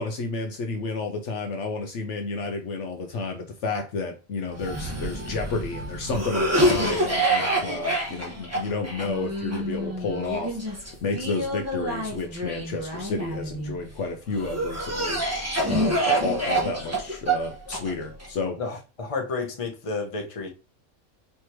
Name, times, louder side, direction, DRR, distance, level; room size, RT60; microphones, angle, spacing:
voice 1, 0.0-18.6, left 3 dB, 65° left, 0.9 m, -31 dB
Cough, 4.5-13.8 14.3-18.3, right 1 dB, 10° right, 1.3 m, -27 dB
voice 2, 18.6-20.5, left 4 dB, 30° left, 0.8 m, -31 dB
4.5 x 3.4 x 3.0 m
omnidirectional pair, 1.4 m